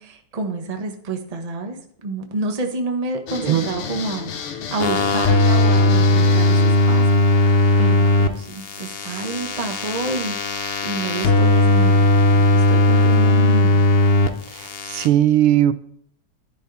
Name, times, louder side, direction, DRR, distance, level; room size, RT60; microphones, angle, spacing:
voice 1, 0.0-7.2 7.8-13.9, right 2 dB, 25° right, 4 dB, 0.9 m, -29 dB
sound 1, 3.3-8.2, left 6 dB, 90° left, 2.1 m, -33 dB
sound 2, 4.8-8.3 8.6-14.3 14.6-15.1, left 2 dB, 75° left, 0.5 m, -17 dB
voice 2, 14.5-15.7, right 12 dB, 90° right, 14 dB, 1.6 m, -18 dB
11.0 x 11.0 x 4.1 m, 0.64 s
omnidirectional pair, 2.4 m